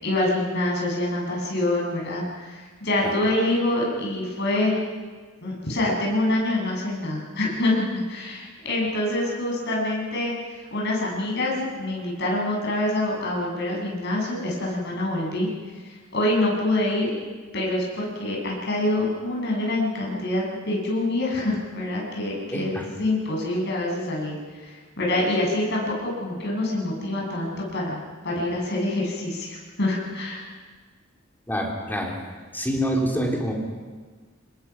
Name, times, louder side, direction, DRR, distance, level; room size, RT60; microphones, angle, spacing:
voice 1, 0.0-4.8 5.4-15.5 15.8-17.1 17.5-24.4 24.6-30.4, left 1 dB, 60° left, -2 dB, 7.5 m, -26 dB
voice 2, 22.5-22.9 31.5-32.2 32.5-33.5, equal, 10° left, -1 dB, 3.6 m, -26 dB
28.5 x 21.0 x 6.0 m, 1.5 s
head